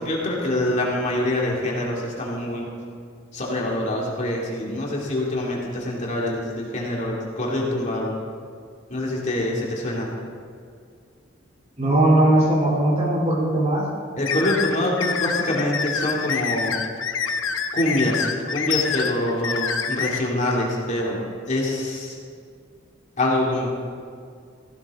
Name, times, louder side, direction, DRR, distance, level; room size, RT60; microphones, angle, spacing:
voice 1, 0.0-2.6 3.3-8.1 8.9-10.1 14.2-16.7 17.7-18.3 18.5-21.2 21.5-22.2 23.2-23.7, left 1 dB, 40° left, -4 dB, 2.7 m, -25 dB
voice 2, 11.8-13.8, right 1 dB, 35° right, -4 dB, 4.1 m, -19 dB
sound 1, 14.3-20.2, left 6 dB, 85° left, 0.9 m, -26 dB
16.0 x 16.0 x 3.8 m, 2.2 s
head